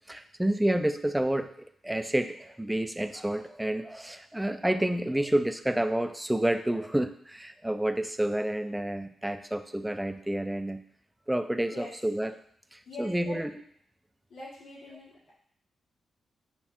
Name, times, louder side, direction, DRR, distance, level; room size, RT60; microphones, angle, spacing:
voice 1, 0.1-10.8 11.3-12.4 12.7-13.6, right 1 dB, 5° right, 9 dB, 0.3 m, -29 dB
voice 2, 12.9-13.4 14.3-15.3, left 2 dB, 80° left, -7 dB, 1.8 m, -43 dB
5.6 x 2.2 x 4.3 m, 0.64 s
cardioid pair, 95°, 0 cm